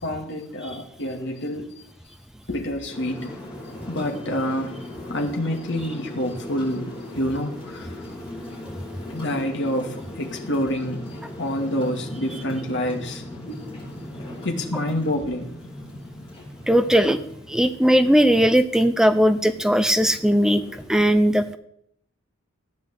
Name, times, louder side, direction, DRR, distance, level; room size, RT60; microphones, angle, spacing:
voice 1, 0.0-1.7 2.5-3.3 3.9-4.8 5.1-7.9 9.1-11.0 11.4-13.2 13.5-13.6 14.4-15.5, equal, 60° left, 2 dB, 2.3 m, -27 dB
sound 1, 2.9-20.9, left 1 dB, 25° left, 7.8 m, -39 dB
voice 2, 16.7-17.2 17.5-20.6 20.9-21.6, equal, 5° right, 10 dB, 0.6 m, -18 dB
15.0 x 10.0 x 8.3 m, 0.71 s
head